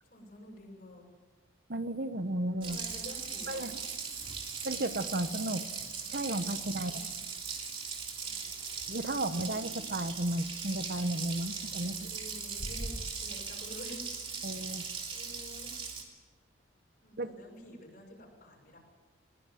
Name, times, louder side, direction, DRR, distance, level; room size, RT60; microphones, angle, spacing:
voice 1, 0.0-1.1 2.6-3.7 6.5-7.0 8.2-8.6 9.3-9.8 12.0-14.0 14.6-14.8 15.1-15.7 17.0-18.8, equal, 50° left, -1 dB, 6.3 m, -47 dB
voice 2, 1.7-2.8 3.5-3.8 4.6-5.6 6.1-6.9 8.9-12.1 14.4-14.9 17.2-17.3, right 1 dB, 50° right, 11 dB, 1.1 m, -34 dB
Water tap faucet, 2.6-16.0, right 5 dB, 30° right, 2.9 m, -39 dB
21.5 x 21.0 x 7.7 m, 1.3 s
head